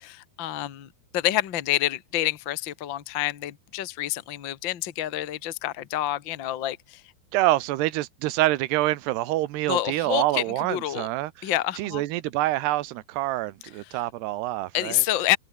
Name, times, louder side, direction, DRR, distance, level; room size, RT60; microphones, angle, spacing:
voice 1, 0.0-7.0 9.7-10.4 10.7-11.1 11.4-12.0 14.7-15.4, left 14 dB, 60° left, 1.2 m, -28 dB
voice 2, 7.3-11.5 11.8-15.0, right 16 dB, 85° right, 3.0 m, -26 dB
omnidirectional pair, 4.7 m